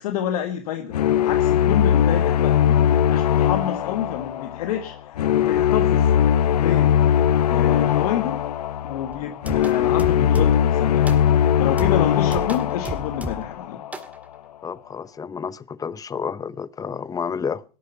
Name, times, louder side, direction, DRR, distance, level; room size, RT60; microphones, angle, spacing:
voice 1, 0.0-6.1 6.5-7.0 7.4-8.4 8.8-11.1 11.6-13.8, left 10 dB, 75° left, 1.6 m, -28 dB
sound 1, 0.9-14.0, left 9 dB, 90° left, 0.7 m, -20 dB
sound 2, 9.1-10.7 11.1-11.5 11.8-13.6 13.9-14.2, right 2 dB, 10° right, 1.8 m, -35 dB
voice 2, 14.6-17.6, left 6 dB, 20° left, 0.7 m, -30 dB
16.5 x 12.5 x 5.7 m
hypercardioid pair, 110°, 20 cm